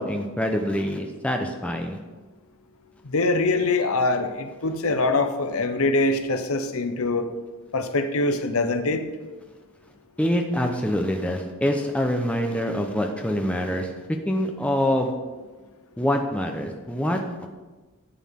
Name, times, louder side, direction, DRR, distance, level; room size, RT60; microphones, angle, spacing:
voice 1, 0.0-2.0 10.2-13.9 14.3-15.1 16.0-17.5, equal, 5° left, 3 dB, 0.7 m, -25 dB
voice 2, 3.0-7.3 7.7-9.0, left 2 dB, 80° left, 8 dB, 0.8 m, -23 dB
11.5 x 8.0 x 3.7 m, 1.3 s
head